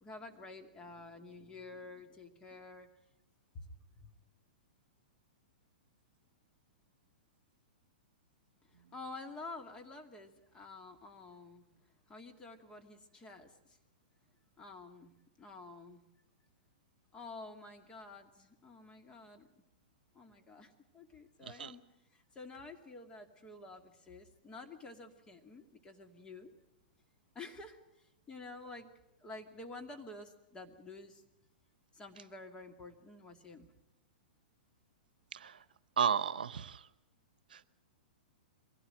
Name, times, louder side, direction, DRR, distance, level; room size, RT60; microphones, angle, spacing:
voice 1, 0.0-2.9 3.5-3.7 4.0-4.1 8.6-11.7 12.1-13.8 14.6-16.0 17.1-19.6 20.1-21.8 22.1-26.5 27.3-28.9 29.2-31.2 31.9-33.7, left 3 dB, 20° left, 5 dB, 2.4 m, -50 dB
voice 2, 35.3-35.6 36.0-36.9 37.5-37.7, right 7 dB, 75° right, 15 dB, 0.9 m, -33 dB
23.0 x 16.5 x 9.1 m, 0.90 s
hypercardioid pair, 115°, 5 cm